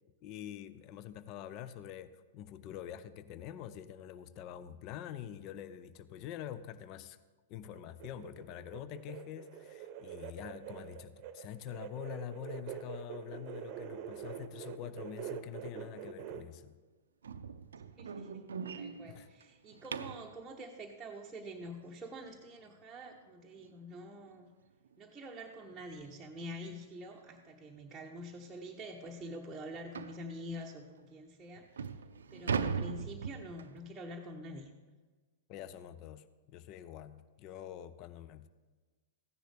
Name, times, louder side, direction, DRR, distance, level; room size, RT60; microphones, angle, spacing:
voice 1, 0.2-7.2 7.5-16.8 19.1-19.3 35.5-38.5, left 10 dB, 40° left, 14 dB, 0.5 m, -46 dB
sound 1, 7.7-16.4, right 9 dB, 40° right, 0.8 m, -45 dB
sound 2, 17.2-20.3 23.1-23.2 23.7-23.9 24.3-24.4 24.9-25.0 26.0-26.2 26.6-26.7 27.4-27.5 27.8-27.9 28.4-28.5 29.9-30.2 31.0-31.1 31.6-33.8, right 6 dB, 70° right, 0.5 m, -39 dB
voice 2, 18.0-18.5 18.7-24.5 25.0-31.9 32.3-34.7, equal, 10° right, -3 dB, 1.0 m, -46 dB
15.0 x 10.0 x 3.4 m, 1.3 s
figure-of-eight pair, 105°, 0 cm